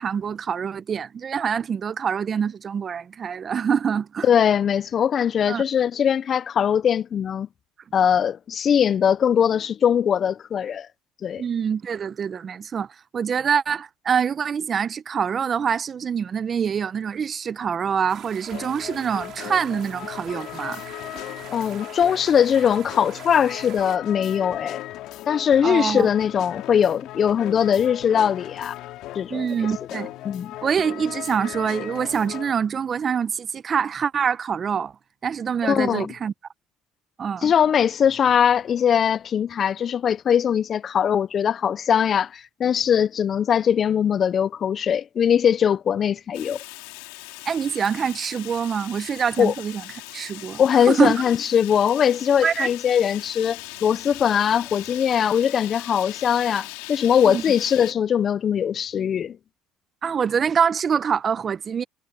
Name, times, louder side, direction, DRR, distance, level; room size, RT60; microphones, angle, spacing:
voice 1, 0.0-4.2 5.5-5.6 11.4-12.9 13.1-20.8 25.6-26.1 29.3-30.1 30.6-34.9 35.2-36.3 37.2-37.5 47.5-49.8 50.1-50.6 50.9-51.2 52.4-52.7 57.2-57.4 60.0-61.8, right 7 dB, 40° right, 0.8 m, -25 dB
voice 2, 4.2-7.5 7.9-10.9 11.2-11.4 21.5-24.8 25.3-28.7 29.1-29.5 30.2-30.5 35.6-36.1 37.4-46.6 49.4-49.5 50.6-59.4, left 8 dB, 45° left, 0.5 m, -21 dB
sound 1, 18.1-24.0, right 11 dB, 60° right, 2.5 m, -43 dB
sound 2, 18.5-32.5, left 15 dB, 70° left, 5.0 m, -37 dB
Fire, 46.3-57.9, left 24 dB, 85° left, 3.3 m, -40 dB
supercardioid pair, 85°, 0 cm